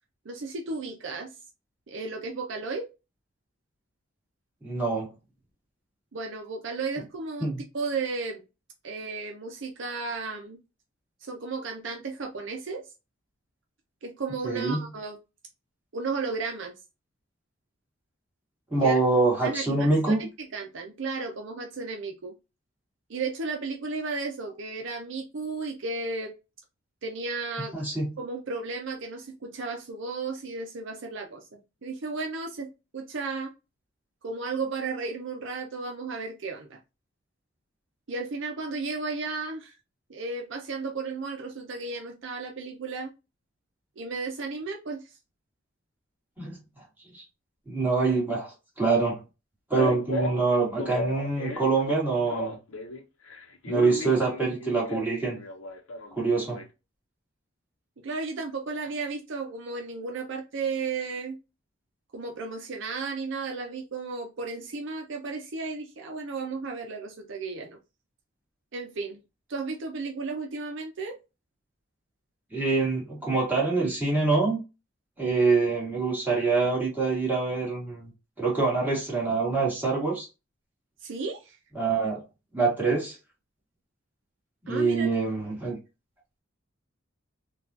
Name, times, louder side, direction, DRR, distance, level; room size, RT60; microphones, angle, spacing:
voice 1, 0.2-1.3 1.9-2.9 6.1-8.4 8.8-10.6 11.2-12.9 14.0-15.2 15.9-16.7 18.7-19.0 19.4-22.4 23.1-26.3 27.0-27.7 28.2-31.4 31.8-32.7 32.9-33.5 34.2-36.8 38.1-39.7 40.1-43.1 44.0-45.1 58.0-61.4 62.1-67.8 68.7-69.2 69.5-71.2 81.0-81.6 84.7-85.1, right 4 dB, 65° right, 2 dB, 0.6 m, -34 dB
voice 2, 4.6-5.1 7.4-7.6 14.4-14.8 18.7-20.3 27.7-28.1 46.4-46.6 47.1-47.2 47.7-48.5 48.8-49.2 49.7-52.6 53.7-55.4 56.2-56.6 72.5-74.6 75.2-78.1 78.4-80.3 81.8-82.2 82.5-83.2 84.7-85.8, right 3 dB, 10° right, -4 dB, 1.7 m, -25 dB
Male speech man speaking, 49.8-53.0 53.3-56.6, left 2 dB, 90° left, 0.9 m, -34 dB
3.9 x 2.4 x 2.7 m, 0.27 s
head